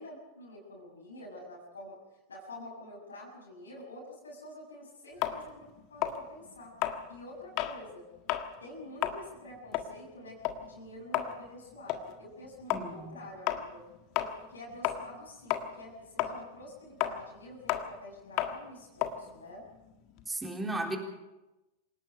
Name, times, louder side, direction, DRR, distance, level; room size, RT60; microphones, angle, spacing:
voice 1, 0.0-6.7 7.1-8.1 8.6-13.8 14.2-19.6, left 1 dB, 70° left, -3 dB, 6.8 m, -48 dB
sound 1, 5.2-7.8 8.2-8.5 8.9-15.2 15.5-20.3, left 12 dB, 40° left, 1.7 m, -34 dB
voice 2, 12.7-13.2 20.3-21.0, right 2 dB, 10° right, 2 dB, 3.8 m, -35 dB
27.5 x 18.5 x 5.2 m, 1.0 s
figure-of-eight pair, 90°, 0 cm